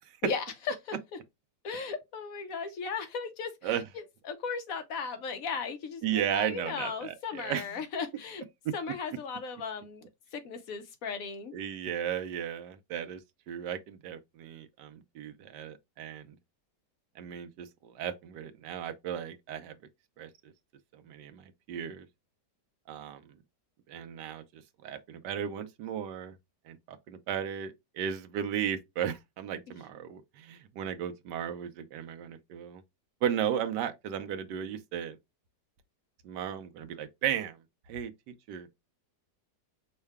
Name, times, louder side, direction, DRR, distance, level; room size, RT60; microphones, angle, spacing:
voice 1, 0.2-1.0 1.6-8.4 8.7-11.5 29.7-29.8, left 5 dB, 65° left, 1.0 m, -37 dB
voice 2, 6.0-7.7 11.5-13.2 13.5-16.4 17.2-19.7 20.2-20.5 20.9-22.1 22.9-23.2 23.9-26.3 26.7-32.8 33.2-35.2 36.2-37.6 37.9-38.7, right 9 dB, 85° right, 1.3 m, -35 dB
5.5 x 2.2 x 3.4 m
omnidirectional pair, 1.8 m